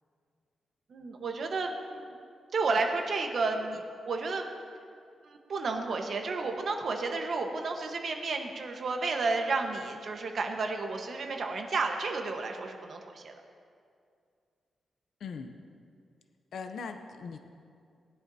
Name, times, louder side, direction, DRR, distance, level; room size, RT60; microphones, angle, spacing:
voice 1, 0.9-2.1 2.5-4.5 5.2-13.4, right 3 dB, 55° right, 3 dB, 1.2 m, -32 dB
voice 2, 15.2-15.5 16.5-17.4, left 5 dB, 75° left, 6 dB, 0.7 m, -39 dB
19.5 x 11.0 x 2.8 m, 2.3 s
cardioid pair, 110°, 0 cm